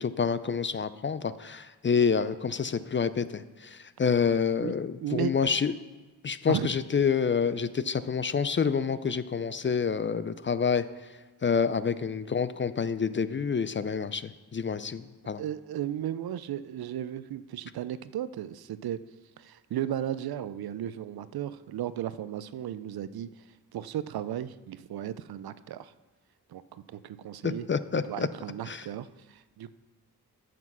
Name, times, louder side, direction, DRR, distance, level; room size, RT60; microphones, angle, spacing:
voice 1, 0.0-5.7 6.2-10.8 11.4-15.4 27.4-28.3 28.7-28.8, left 6 dB, 30° left, 14 dB, 0.4 m, -28 dB
voice 2, 4.5-5.3 6.5-6.7 15.4-19.0 19.4-23.4 23.7-25.9 26.5-27.7 28.0-29.7, right 11 dB, 70° right, 15 dB, 0.5 m, -35 dB
9.2 x 6.0 x 6.1 m, 1.3 s
cardioid pair, 60°, 39 cm